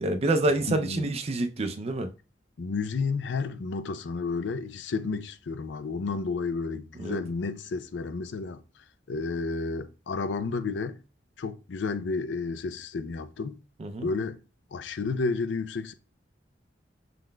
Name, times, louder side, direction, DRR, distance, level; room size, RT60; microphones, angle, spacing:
voice 1, 0.0-2.1 7.0-7.2 13.8-14.1, right 2 dB, 35° right, 0.4 m, -27 dB
voice 2, 0.7-1.1 2.6-8.6 9.1-11.0 11.4-13.6 14.0-14.4 14.7-15.9, left 4 dB, 75° left, 0.4 m, -31 dB
6.2 x 3.9 x 2.2 m
head